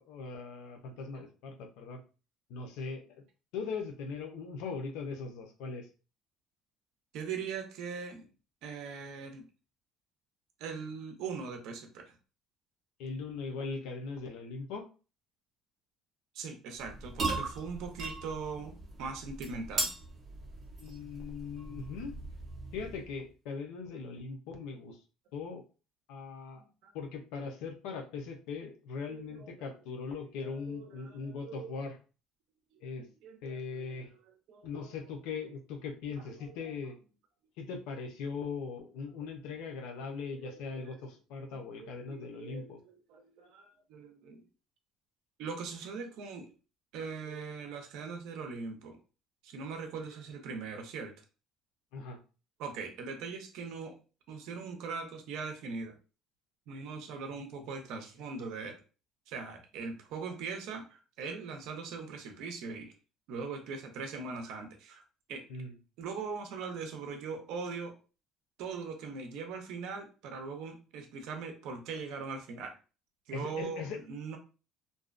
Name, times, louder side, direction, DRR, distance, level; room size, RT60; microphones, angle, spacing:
voice 1, 0.1-2.0 2.5-3.2 3.5-5.9 13.0-14.9 20.8-22.2 22.7-25.0 25.3-25.6 26.1-26.6 26.9-32.0 32.8-33.1 33.4-34.1 34.6-37.0 37.6-42.8 51.9-52.2 65.5-65.8 73.3-74.0, left 4 dB, 85° left, 4 dB, 0.6 m, -40 dB
voice 2, 7.1-8.3 8.6-9.4 10.6-12.1 16.3-20.0 26.6-26.9 29.1-29.7 30.4-31.2 31.4-31.8 32.7-34.1 34.5-34.9 40.0-40.1 40.4-41.0 41.5-44.5 45.4-46.5 46.9-49.0 49.4-51.1 52.6-54.0 54.3-56.0 56.7-58.8 59.3-62.9 63.3-65.0 65.3-65.5 66.0-68.0 68.6-72.8 73.3-74.4, right 5 dB, 70° right, 5 dB, 0.6 m, -41 dB
sound 1, 16.8-23.2, right 3 dB, 25° right, 0.8 m, -39 dB
2.6 x 2.1 x 2.4 m, 0.34 s
cardioid pair, 155°, 0 cm